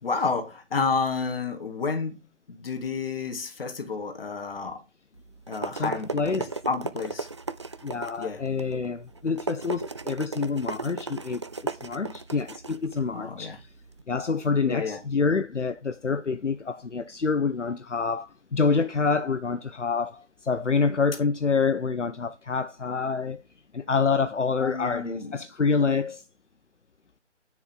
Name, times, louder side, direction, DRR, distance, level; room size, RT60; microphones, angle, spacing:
voice 1, 0.0-4.8 5.5-6.1 6.4-7.3 8.2-8.4 13.1-13.6 14.6-15.0 24.6-25.3, left 4 dB, 50° left, 3.4 m, -30 dB
sound 1, 5.1-14.0, right 3 dB, 25° right, 0.5 m, -36 dB
voice 2, 5.7-6.6 7.8-11.4 11.7-13.7 14.1-23.4 23.7-26.2, left 4 dB, 80° left, 1.0 m, -27 dB
9.7 x 7.2 x 3.9 m
figure-of-eight pair, 145°, 36 cm